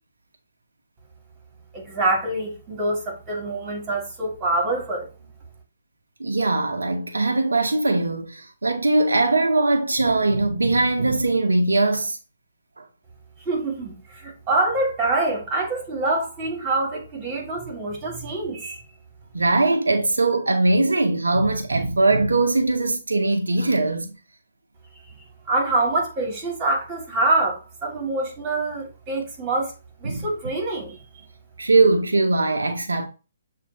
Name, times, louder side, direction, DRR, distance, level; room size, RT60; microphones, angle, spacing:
voice 1, 1.7-5.3 13.5-18.8 25.1-25.2 25.5-29.7 30.0-31.3, right 2 dB, 20° right, 2.0 m, -25 dB
voice 2, 6.2-12.2 12.8-12.9 19.3-24.1 30.0-30.2 31.6-33.1, right 2 dB, 85° right, 0.6 m, -21 dB
7.0 x 2.5 x 2.7 m
figure-of-eight pair, 135°, 0 cm